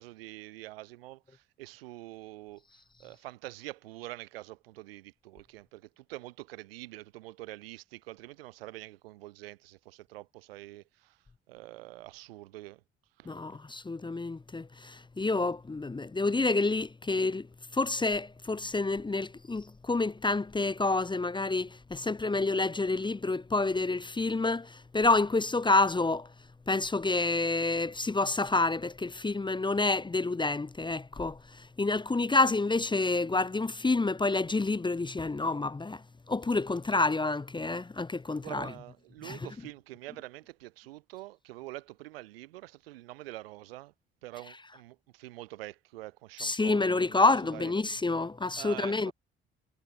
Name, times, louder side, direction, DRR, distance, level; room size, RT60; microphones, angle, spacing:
voice 1, 0.0-2.6 3.0-11.2 11.5-12.8 13.2-13.4 38.4-43.9 44.2-47.2 47.4-47.7 48.6-49.1, right 17 dB, 80° right, 2.0 m, -45 dB
voice 2, 13.3-17.5 17.7-26.3 26.7-31.4 31.8-36.0 36.3-38.7 39.2-39.4 46.4-49.1, left 3 dB, 15° left, 0.8 m, -28 dB
figure-of-eight pair, 45°, 29 cm